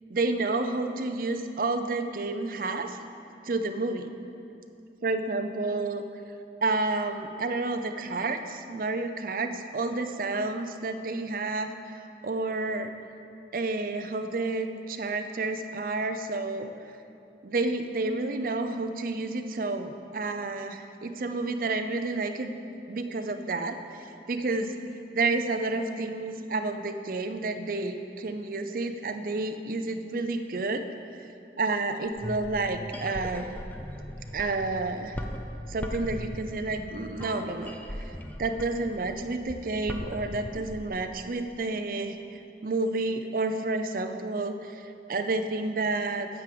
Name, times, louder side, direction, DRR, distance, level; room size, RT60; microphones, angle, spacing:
voice 1, 0.1-3.0 3.4-4.1 5.0-6.0 6.6-12.9 13.5-16.7 17.4-22.6 22.9-24.7 25.1-30.8 31.1-31.3 31.6-33.6 34.3-35.2 35.7-38.1 38.4-46.3, right 3 dB, 50° right, 7 dB, 0.5 m, -30 dB
sound 1, 32.1-40.9, equal, 10° left, 0.5 m, -39 dB
9.2 x 4.9 x 7.7 m, 2.6 s
head